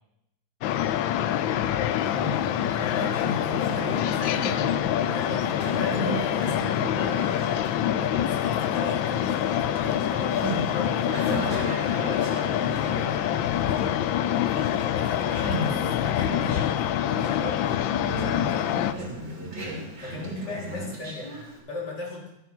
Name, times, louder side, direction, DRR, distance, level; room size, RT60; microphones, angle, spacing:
sound 1, 0.6-18.9, left 11 dB, 85° left, 1.4 m, -26 dB
Conversation, 1.9-21.6, right 1 dB, 60° right, 4.0 m, -36 dB
voice 1, 2.7-4.6 5.1-7.5 8.0-11.8 14.5-18.9 20.0-21.4 21.6-22.3, left 2 dB, 60° left, -3 dB, 3.9 m, -38 dB
voice 2, 5.0-5.3 7.8-8.1 12.1-13.9 19.4-19.7, right 4 dB, 85° right, 3 dB, 2.6 m, -43 dB
13.0 x 8.9 x 5.7 m, 0.84 s
omnidirectional pair, 2.1 m